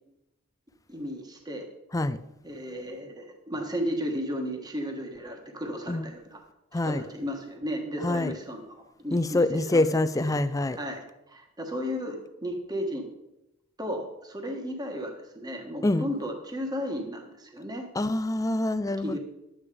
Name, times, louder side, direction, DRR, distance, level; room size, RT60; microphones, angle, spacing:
voice 1, 0.9-1.7 2.4-6.4 6.8-10.4 10.7-13.1 13.8-17.9 19.0-19.2, equal, 20° right, 1.4 m, -34 dB
voice 2, 6.7-7.0 8.0-8.4 9.1-10.8 15.8-16.1 18.0-19.2, left 2 dB, 15° left, 0.4 m, -25 dB
11.5 x 8.7 x 5.0 m
head